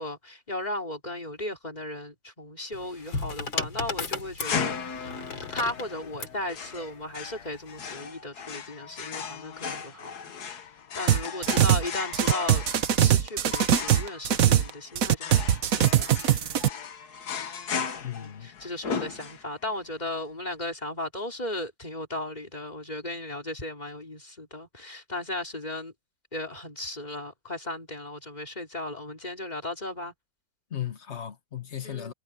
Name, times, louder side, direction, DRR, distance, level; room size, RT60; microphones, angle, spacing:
voice 1, 0.0-5.1 5.5-10.3 10.9-12.6 13.0-16.1 18.2-25.9 26.3-30.1 31.8-32.1, left 1 dB, 20° left, 3.5 m, -36 dB
sound 1, 2.7-6.4 7.4-7.8, left 4 dB, 75° left, 3.5 m, -34 dB
sound 2, 4.4-19.7, left 6 dB, 55° left, 1.7 m, -36 dB
sound 3, 11.1-11.9 12.1-14.7 15.0-16.7, right 10 dB, 55° right, 1.1 m, -21 dB
voice 2, 18.0-18.5 30.7-32.1, left 10 dB, 40° left, 1.5 m, -36 dB
omnidirectional pair, 2.1 m